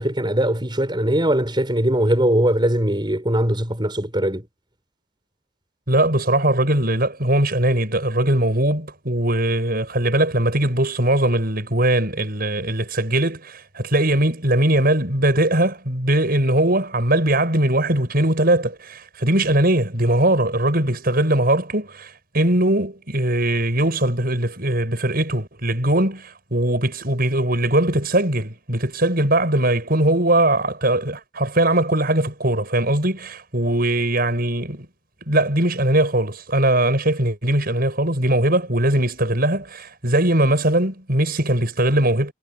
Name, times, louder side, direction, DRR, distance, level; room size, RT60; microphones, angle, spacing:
voice 1, 0.0-4.4, right 1 dB, 25° right, 6.0 m, -20 dB
voice 2, 5.9-34.9 35.3-42.3, right 1 dB, 50° right, 7.2 m, -20 dB
head